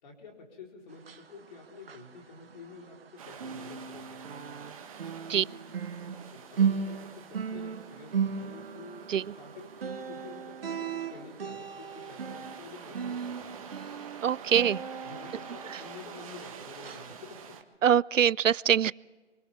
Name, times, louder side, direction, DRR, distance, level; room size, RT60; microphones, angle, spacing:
voice 1, 0.0-4.2 5.3-5.6 6.3-13.5 15.0-17.6, left 4 dB, 35° left, 0 dB, 4.7 m, -49 dB
sound 1, 0.9-3.1 3.3-16.5 16.8-17.1 17.6-17.7, right 6 dB, 50° right, 1.6 m, -36 dB
sound 2, 3.2-17.6, right 6 dB, 25° right, 1.5 m, -48 dB
voice 2, 14.2-14.8 17.8-18.9, right 9 dB, 85° right, 24 dB, 0.5 m, -23 dB
30.0 x 24.5 x 3.7 m, 1.4 s
hypercardioid pair, 160°, 38 cm